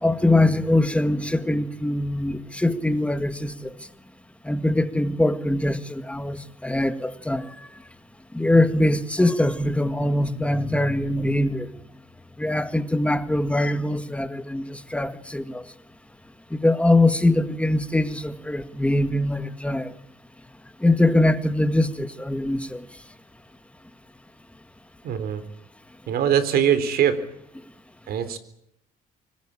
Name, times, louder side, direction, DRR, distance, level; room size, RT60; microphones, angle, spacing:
voice 1, 0.0-3.7 4.5-7.5 8.3-11.7 12.4-15.6 16.5-19.9 20.8-22.8, left 1 dB, 5° left, 1.8 m, -22 dB
voice 2, 25.0-25.4 26.1-27.2 28.1-28.4, right 9 dB, 65° right, 3.8 m, -22 dB
25.0 x 18.5 x 8.8 m
cardioid pair, 110°, 17 cm